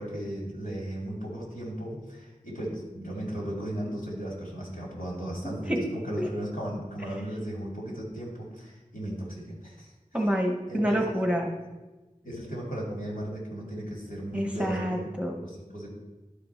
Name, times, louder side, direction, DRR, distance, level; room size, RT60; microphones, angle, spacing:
voice 1, 0.0-9.9 10.7-11.1 12.2-15.1 15.4-15.9, right 1 dB, 75° left, -3 dB, 2.5 m, -36 dB
voice 2, 5.4-5.8 6.2-6.3 10.1-11.5 14.3-15.4, equal, 10° right, 0 dB, 1.0 m, -28 dB
11.0 x 4.3 x 4.3 m, 1.1 s
wide cardioid pair, 45°, 14 cm